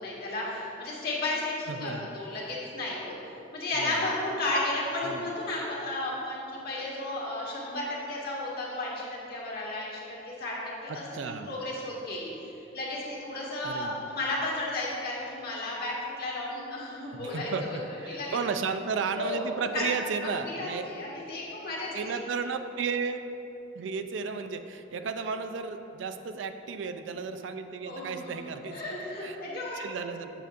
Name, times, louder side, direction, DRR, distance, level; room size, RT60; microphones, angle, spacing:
voice 1, 0.0-3.1 3.5-17.8 18.1-18.4 19.2-19.9 20.2-22.1 27.9-29.9, left 2 dB, 55° left, -5 dB, 1.5 m, -33 dB
voice 2, 1.7-2.1 3.7-4.1 5.0-5.2 10.9-11.5 13.6-14.1 17.2-20.8 21.9-23.2 23.8-29.4 29.7-30.3, right 5 dB, 75° right, 8 dB, 0.4 m, -34 dB
7.5 x 6.5 x 2.6 m, 2.9 s
head